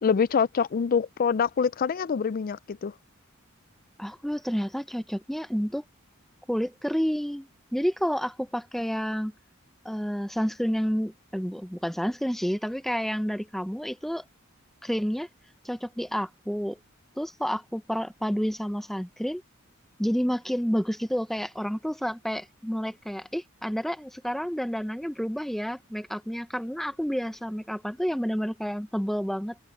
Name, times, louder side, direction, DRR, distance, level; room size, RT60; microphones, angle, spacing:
voice 1, 0.0-2.9, left 6 dB, 45° left, 0.4 m, -25 dB
voice 2, 4.0-5.8 6.5-9.3 9.8-14.2 14.8-15.3 15.6-16.8 17.2-19.4 20.0-29.6, equal, ahead, 0.7 m, -29 dB
head